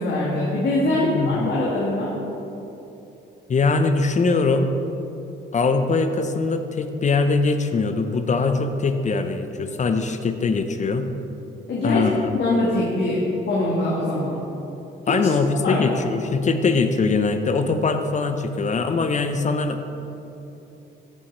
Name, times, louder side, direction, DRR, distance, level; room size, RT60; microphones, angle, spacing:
voice 1, 0.0-2.1 11.7-12.0 12.3-13.2 13.5-14.4 15.1-15.2 15.6-15.8, left 2 dB, 60° left, -5 dB, 1.8 m, -23 dB
voice 2, 0.9-1.6 3.5-4.7 5.5-11.1 11.8-12.4 15.1-19.9, left 4 dB, 35° left, 8 dB, 0.7 m, -22 dB
14.0 x 5.8 x 4.2 m, 3.0 s
cardioid pair, 90°, 20 cm